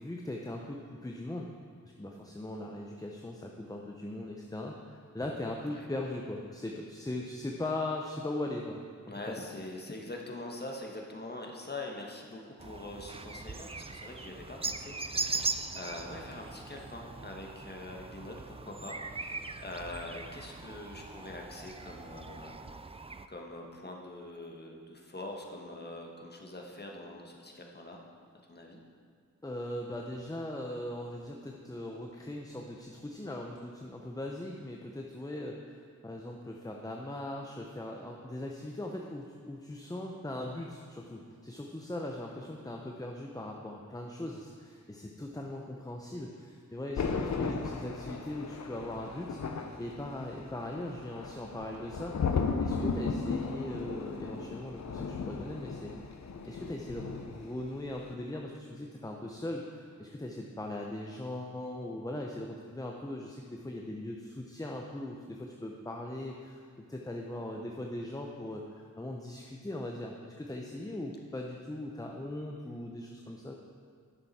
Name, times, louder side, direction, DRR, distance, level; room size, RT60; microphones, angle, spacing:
voice 1, 0.0-1.5 2.0-8.8 9.3-9.4 29.4-56.2 56.5-66.6 66.9-73.5, left 1 dB, 10° left, 1 dB, 0.7 m, -39 dB
voice 2, 9.1-22.9 23.3-28.0 28.4-28.8, left 2 dB, 35° left, 0 dB, 1.4 m, -44 dB
sound 1, 12.6-23.3, right 4 dB, 20° right, 0.4 m, -40 dB
Thunder, 47.0-57.6 57.8-58.1, left 4 dB, 65° left, 0.7 m, -35 dB
10.0 x 6.9 x 4.2 m, 2.1 s
wide cardioid pair, 60°, 31 cm